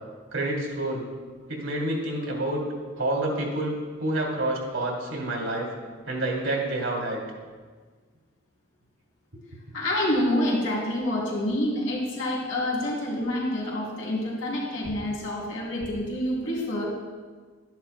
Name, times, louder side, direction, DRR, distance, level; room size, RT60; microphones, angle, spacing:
voice 1, 0.3-1.1 1.5-2.6 3.0-5.7 6.1-7.2, right 1 dB, 85° right, -1 dB, 2.4 m, -28 dB
voice 2, 9.7-16.8, left 1 dB, 85° left, -4 dB, 3.1 m, -27 dB
12.0 x 10.5 x 2.3 m, 1.5 s
head